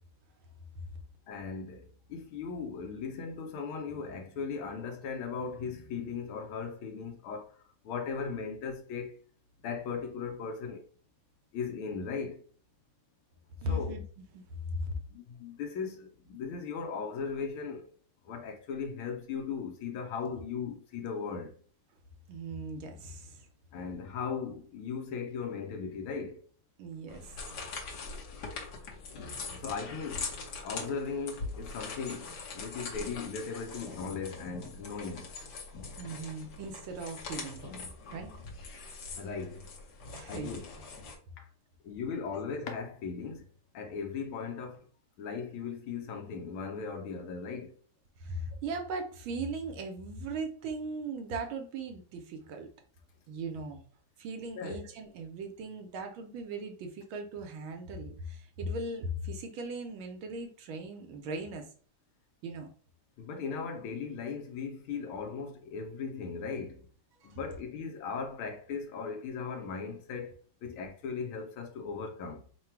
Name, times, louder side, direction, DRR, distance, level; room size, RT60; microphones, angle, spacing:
voice 1, 1.3-7.6 7.8-9.2 9.6-10.8 11.5-12.4 13.7-13.9 15.1-17.9 18.2-21.5 23.7-26.5 29.5-35.3 39.1-39.7 40.3-40.7 41.4-41.5 41.8-43.5 43.7-44.8 45.2-47.7 54.5-54.9 63.2-66.9 67.2-72.4, left 5 dB, 75° left, 1.5 m, -38 dB
voice 2, 13.6-14.0 14.3-14.4 14.8-14.9 22.3-23.5 26.8-27.4 36.0-37.7 38.1-38.3 40.1-40.6 48.2-52.7 53.3-53.8 54.2-61.7 62.4-62.7 67.2-67.4, right 2 dB, 75° right, 1.4 m, -38 dB
sound 1, 27.1-41.1, left 4 dB, 60° left, 1.3 m, -42 dB
3.9 x 2.2 x 4.4 m
omnidirectional pair, 2.4 m